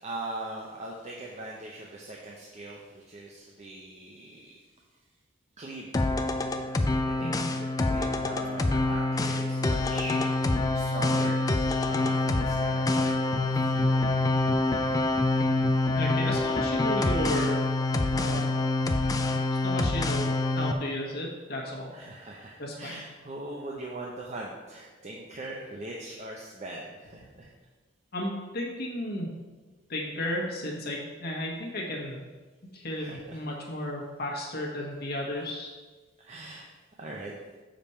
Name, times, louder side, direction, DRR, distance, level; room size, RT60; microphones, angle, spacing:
voice 1, 0.0-4.5 5.6-5.9 7.1-10.3 10.7-11.4 11.8-14.1 21.9-27.5 33.0-33.4 35.3-35.5 36.2-36.7 37.0-37.3, right 2 dB, 35° right, -2 dB, 0.7 m, -41 dB
sound 1, 5.9-20.7, left 2 dB, 20° left, 0.4 m, -26 dB
voice 2, 15.9-17.6 18.1-18.5 19.6-20.3 20.6-21.9 22.6-23.0 28.1-29.3 29.9-32.2 32.7-35.7, left 1 dB, 55° left, -2 dB, 1.3 m, -33 dB
6.9 x 5.2 x 4.4 m, 1.3 s
head